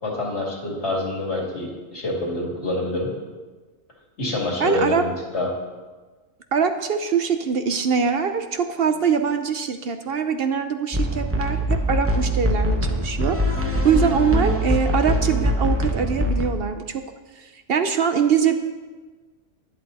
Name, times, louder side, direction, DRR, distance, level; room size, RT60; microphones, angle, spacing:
voice 1, 0.0-3.1 4.2-5.5, left 2 dB, 70° left, -2 dB, 2.8 m, -26 dB
voice 2, 4.6-5.0 6.5-17.0 17.4-18.5, right 6 dB, 60° right, 7 dB, 0.8 m, -23 dB
sound 1, 10.9-16.5, equal, 15° right, 0.9 m, -22 dB
11.0 x 10.5 x 4.1 m, 1.3 s
omnidirectional pair, 1.2 m